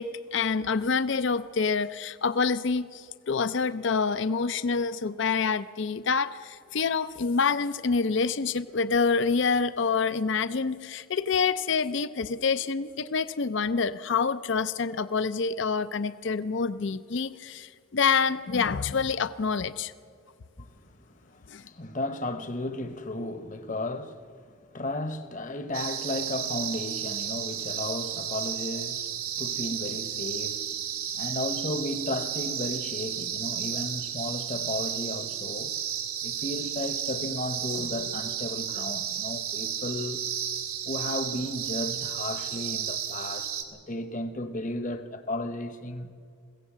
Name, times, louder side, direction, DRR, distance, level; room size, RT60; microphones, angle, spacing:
voice 1, 0.0-19.9 21.5-21.6, left 5 dB, 55° left, 0.5 m, -27 dB
voice 2, 20.6-24.3 24.7-30.8 31.1-35.7 36.2-40.3 40.9-46.1, left 1 dB, 35° left, 1.0 m, -34 dB
sound 1, 25.7-43.6, right 9 dB, 90° right, 1.8 m, -33 dB
22.0 x 16.0 x 7.4 m
head